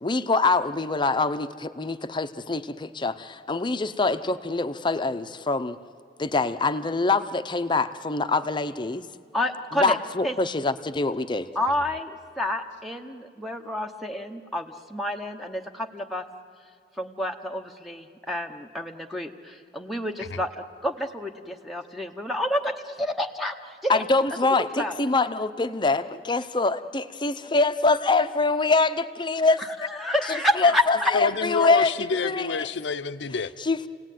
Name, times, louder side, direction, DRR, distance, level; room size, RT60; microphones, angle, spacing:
voice 1, 0.0-5.8 6.2-9.1 9.7-11.5 23.9-29.6 30.3-31.9 32.2-32.7 33.6-33.9, left 3 dB, 25° left, 10 dB, 0.7 m, -24 dB
voice 2, 9.3-10.0 10.2-10.3 11.5-16.2 17.0-24.0 24.8-25.0 29.6-31.1, left 1 dB, ahead, 4 dB, 0.9 m, -29 dB
voice 3, 31.1-33.5, left 4 dB, 80° left, 12 dB, 0.7 m, -27 dB
30.0 x 18.0 x 9.2 m, 2.1 s
head